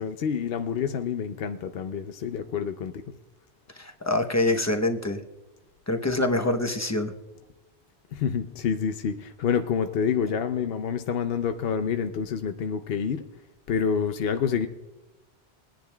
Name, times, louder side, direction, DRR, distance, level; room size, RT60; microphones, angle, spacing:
voice 1, 0.0-3.0 8.1-13.3 13.7-14.7, left 7 dB, 65° left, 8 dB, 0.8 m, -28 dB
voice 2, 3.7-5.2 5.9-7.1, left 2 dB, 15° left, 6 dB, 0.7 m, -25 dB
22.0 x 10.5 x 2.2 m, 1.1 s
omnidirectional pair, 1.1 m